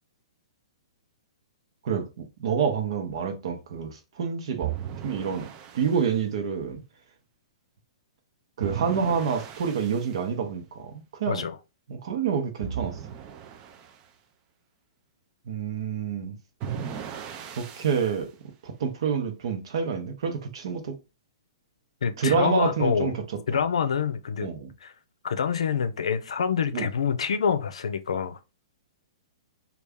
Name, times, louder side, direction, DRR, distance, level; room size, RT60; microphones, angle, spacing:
voice 1, 1.8-4.7 5.0-5.5 5.7-6.8 8.6-10.9 11.2-11.4 11.9-13.0 15.5-16.4 17.6-18.3 18.6-20.9 22.2-23.2 23.5-23.6 24.4-24.7 26.7-26.9, right 6 dB, 60° right, 0.8 m, -28 dB
sound 1, 4.6-6.0 8.6-10.1 12.6-14.0 16.6-18.2, right 9 dB, 30° right, 0.4 m, -36 dB
voice 2, 11.3-11.6 22.0-23.1 23.5-24.5 24.8-24.9 25.2-28.4, left 6 dB, 85° left, 0.5 m, -26 dB
3.3 x 2.4 x 3.5 m
hypercardioid pair, 150°, 3 cm